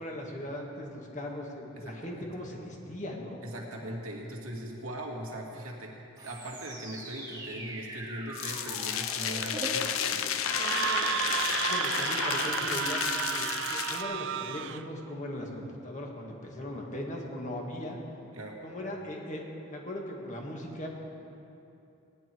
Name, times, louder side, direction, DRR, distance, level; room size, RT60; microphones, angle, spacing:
voice 1, 0.0-3.4 11.5-13.1 13.4-18.0 18.6-20.9, left 1 dB, 35° left, 0 dB, 1.8 m, -39 dB
voice 2, 1.7-2.3 3.4-10.5 18.3-18.6, right 1 dB, 80° right, 0 dB, 2.1 m, -40 dB
sound 1, 6.2-11.8, right 1 dB, 15° right, 1.6 m, -42 dB
sound 2, 8.4-14.0, left 8 dB, 70° left, 0.7 m, -32 dB
Screaming, 10.5-14.8, right 8 dB, 55° right, 0.4 m, -32 dB
17.5 x 10.5 x 4.6 m, 2.7 s
head